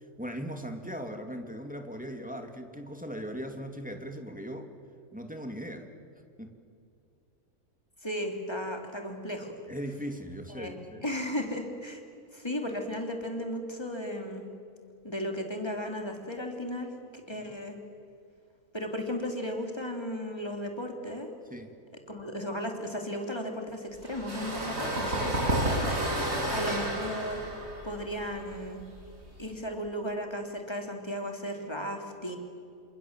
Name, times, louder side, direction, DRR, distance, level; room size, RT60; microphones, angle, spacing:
voice 1, 0.2-4.7 5.1-5.9 6.4-6.5 9.7-11.0 17.4-17.5 21.5-21.7 25.2-25.3 26.2-26.7, equal, 5° right, 4 dB, 2.5 m, -39 dB
voice 2, 8.0-9.5 10.5-12.0 12.3-14.5 15.0-17.8 18.7-21.3 22.1-25.9 26.5-27.4 27.8-28.8 29.4-32.4, equal, 15° left, 3 dB, 3.3 m, -35 dB
sound 1, 24.0-29.5, right 1 dB, 60° right, 7.0 m, -31 dB
28.5 x 26.5 x 7.5 m, 2.5 s
omnidirectional pair, 1.6 m